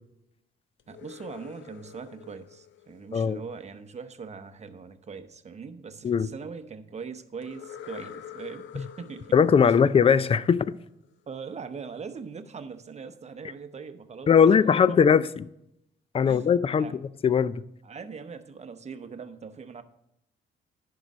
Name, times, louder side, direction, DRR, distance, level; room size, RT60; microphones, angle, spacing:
sound 1, 0.8-3.8 7.4-11.1, left 9 dB, 75° left, 0.6 m, -47 dB
voice 1, 0.9-9.3 9.6-9.8 11.3-14.5 14.9-15.0 16.2-16.5 16.8-17.0 17.8-19.8, right 5 dB, 35° right, 0.8 m, -41 dB
voice 2, 9.3-10.7 14.3-15.5 16.1-16.9 17.2-17.6, left 7 dB, 30° left, 0.4 m, -20 dB
10.5 x 4.7 x 5.0 m
cardioid pair, 90°, 20 cm